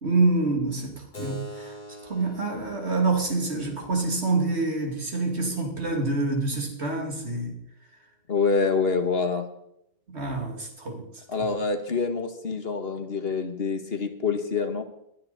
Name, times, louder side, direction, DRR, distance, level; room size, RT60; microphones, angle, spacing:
voice 1, 0.0-1.8 2.0-7.6 10.1-11.5, right 3 dB, 85° right, 3.2 m, -27 dB
Keyboard (musical), 1.1-6.2, left 1 dB, 45° left, 2.8 m, -44 dB
voice 2, 8.3-9.5 11.3-14.8, left 4 dB, 65° left, 1.9 m, -26 dB
20.0 x 12.5 x 4.3 m
omnidirectional pair, 1.1 m